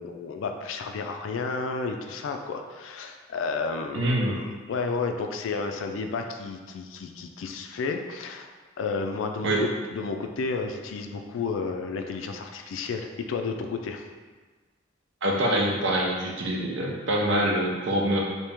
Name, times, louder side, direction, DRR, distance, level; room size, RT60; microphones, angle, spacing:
voice 1, 0.0-8.5 8.8-14.0, left 4 dB, 75° left, 5 dB, 0.3 m, -32 dB
voice 2, 3.9-4.4 9.4-9.6 15.2-18.2, right 1 dB, 65° right, -1 dB, 0.6 m, -25 dB
3.0 x 2.8 x 3.4 m, 1.4 s
head